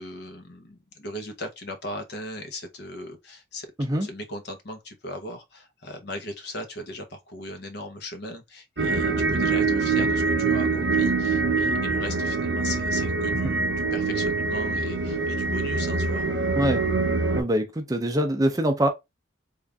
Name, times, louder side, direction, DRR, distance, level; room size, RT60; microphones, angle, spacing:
voice 1, 0.0-16.4, left 1 dB, 55° left, 0.9 m, -38 dB
voice 2, 3.8-4.1 13.4-13.5 16.6-16.8 17.4-18.9, right 1 dB, 20° right, 0.5 m, -24 dB
sound 1, 8.8-17.4, right 4 dB, 65° right, 0.7 m, -24 dB
3.7 x 2.5 x 3.4 m
head